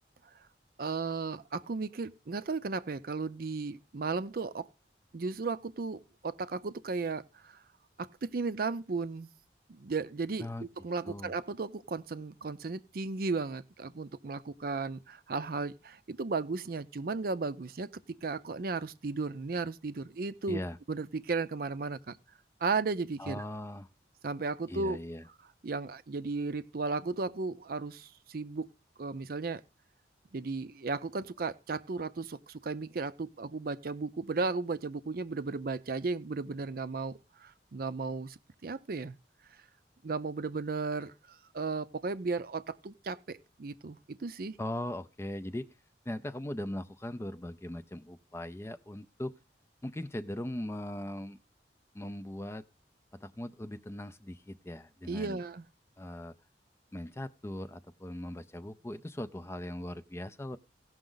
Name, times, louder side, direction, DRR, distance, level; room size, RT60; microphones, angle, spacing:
voice 1, 0.8-4.7 5.1-7.6 8.0-9.3 9.7-17.9 18.2-20.6 20.9-22.2 22.6-23.4 24.2-25.0 25.6-28.7 29.0-29.6 30.3-39.1 40.0-44.6 55.1-55.7, right 4 dB, 55° right, 0.5 m, -35 dB
voice 2, 20.5-20.8 23.2-23.9 24.7-25.2 44.6-45.7 46.1-49.3 49.8-51.4 51.9-52.6 53.2-55.4 56.0-56.3 56.9-60.6, left 1 dB, 15° left, 0.4 m, -39 dB
17.0 x 6.1 x 3.8 m
head